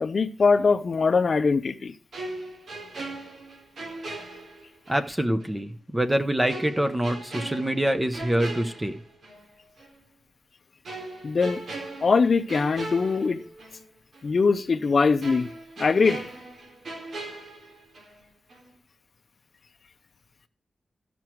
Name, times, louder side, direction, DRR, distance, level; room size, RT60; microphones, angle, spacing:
voice 1, 0.0-1.9 11.2-11.6 12.0-13.4 14.2-15.5 15.8-16.2, left 4 dB, 45° left, 0.7 m, -22 dB
sound 1, 2.1-5.1 5.4-5.5 6.5-9.4 9.8-10.0 10.8-13.8 14.1-14.3 15.2-18.2 18.5-18.7, right 2 dB, 75° right, 3.7 m, -39 dB
voice 2, 4.9-8.9, right 1 dB, 10° right, 0.9 m, -25 dB
13.5 x 6.1 x 4.5 m
wide cardioid pair, 165°, 0 cm